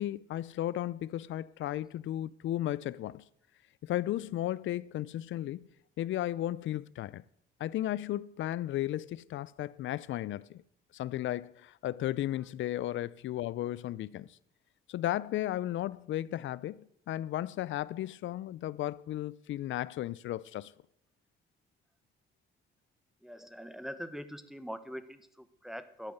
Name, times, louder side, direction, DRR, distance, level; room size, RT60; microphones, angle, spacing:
voice 1, 0.0-3.2 3.8-5.7 6.0-7.2 7.6-10.6 10.9-14.3 14.9-20.7, left 13 dB, 75° left, 0.6 m, -34 dB
voice 2, 23.2-26.1, equal, ahead, 1.2 m, -43 dB
12.5 x 9.5 x 8.1 m
cardioid pair, 90°, 20 cm